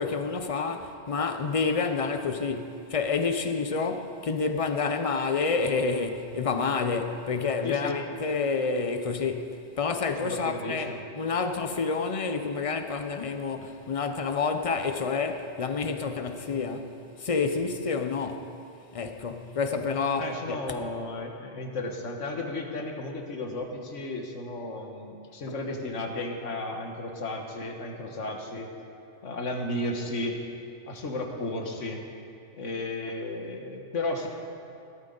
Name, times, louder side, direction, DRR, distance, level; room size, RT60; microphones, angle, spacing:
voice 1, 0.0-18.5 18.9-20.6, left 4 dB, 35° left, 0.6 m, -29 dB
voice 2, 7.6-8.0 10.2-11.1 20.2-28.7 29.2-30.4 30.9-32.0 32.6-34.3, left 2 dB, 80° left, 1.6 m, -34 dB
17.5 x 12.5 x 3.9 m
omnidirectional pair, 1.2 m